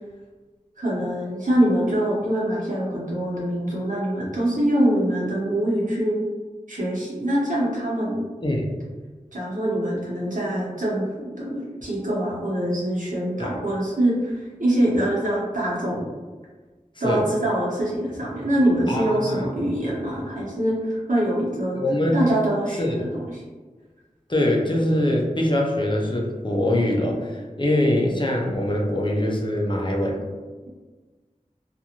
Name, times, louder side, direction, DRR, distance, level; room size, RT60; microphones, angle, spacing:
voice 1, 0.8-6.2 6.7-8.2 9.3-11.0 11.4-16.0 17.0-21.8 22.1-23.4, right 1 dB, 70° right, -6 dB, 0.9 m, -24 dB
voice 2, 18.9-19.5 21.8-22.3 22.8-23.0 24.3-30.2, left 1 dB, 35° left, -1 dB, 0.5 m, -23 dB
2.5 x 2.4 x 2.9 m, 1.3 s
wide cardioid pair, 50°, 14 cm